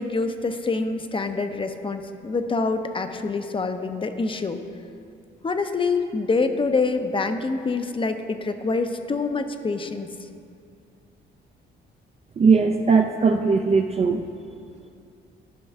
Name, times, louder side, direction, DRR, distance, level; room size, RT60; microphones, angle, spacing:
voice 1, 0.0-4.6 5.4-10.1, left 3 dB, 25° left, 7 dB, 0.6 m, -26 dB
voice 2, 12.4-14.2, right 5 dB, 30° right, 4 dB, 0.4 m, -19 dB
12.5 x 5.3 x 3.5 m, 2.4 s
cardioid pair, 90°, 20 cm